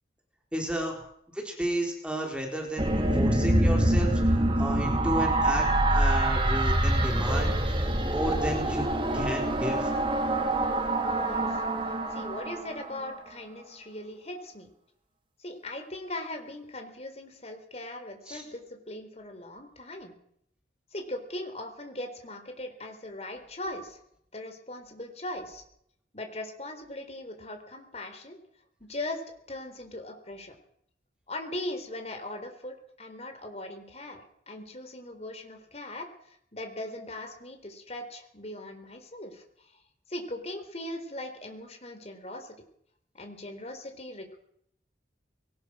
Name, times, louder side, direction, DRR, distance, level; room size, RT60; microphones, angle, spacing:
voice 1, 0.5-1.0 1.3-8.9 9.1-9.9 18.3-18.4, right 1 dB, 5° right, 0 dB, 4.3 m, -33 dB
sound 1, 2.8-13.2, right 1 dB, 30° right, 2.9 m, -25 dB
voice 2, 11.2-11.6 12.1-14.7 15.4-20.2 20.9-24.0 24.3-25.6 26.1-28.4 28.8-29.2 29.5-30.6 31.3-36.1 36.5-39.4 40.1-42.5 43.1-44.4, left 1 dB, 35° left, 6 dB, 3.9 m, -39 dB
22.0 x 19.0 x 6.3 m, 0.70 s
head